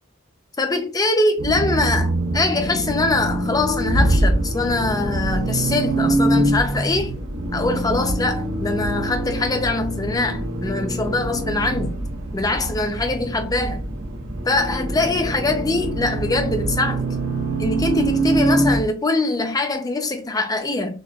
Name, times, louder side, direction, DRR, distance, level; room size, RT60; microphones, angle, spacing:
voice 1, 0.6-7.2 7.5-12.0 12.3-13.9 14.4-17.0 17.6-21.0, left 2 dB, 20° left, 0.5 m, -23 dB
Accelerating revving vroom, 1.4-18.8, right 1 dB, 70° right, 0.8 m, -24 dB
6.3 x 2.4 x 2.2 m
head